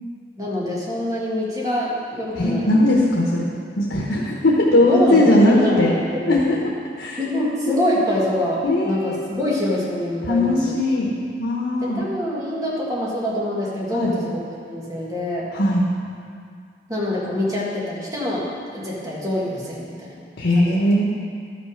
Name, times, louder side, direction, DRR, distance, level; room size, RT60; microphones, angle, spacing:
voice 1, 0.4-2.9 4.9-6.7 7.2-10.7 11.9-15.5 16.9-20.3 20.5-20.8, left 1 dB, 20° right, -5 dB, 1.8 m, -25 dB
voice 2, 2.4-3.5 3.8-5.9 6.3-6.6 7.0-7.2 8.7-9.2 10.2-12.0 13.9-14.1 15.5-15.9 20.4-21.0, left 1 dB, 85° left, -3 dB, 1.1 m, -19 dB
12.0 x 6.0 x 5.1 m, 2.2 s
head